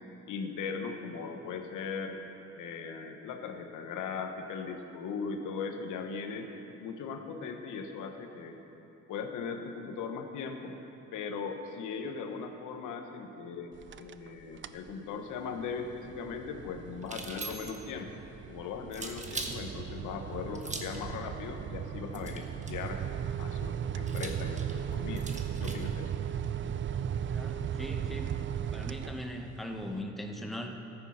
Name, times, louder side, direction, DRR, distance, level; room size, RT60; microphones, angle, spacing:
voice 1, 0.3-2.1 2.6-6.5 6.8-8.6 9.1-10.7 11.1-18.1 18.5-23.0 23.4-25.3 25.6-26.1, left 5 dB, 85° left, 5 dB, 1.2 m, -39 dB
sound 1, 13.7-14.3 14.6-14.9 15.4-29.6, right 9 dB, 40° right, 0.5 m, -37 dB
sound 2, 17.0-17.9 18.9-19.6 20.5-21.0 22.1-22.9 24.1-25.9, right 3 dB, 25° right, 1.3 m, -41 dB
voice 2, 27.3-28.3 28.7-30.8, equal, ahead, 2 dB, 1.1 m, -39 dB
14.0 x 9.1 x 5.8 m, 3.0 s
cardioid pair, 90°, 30 cm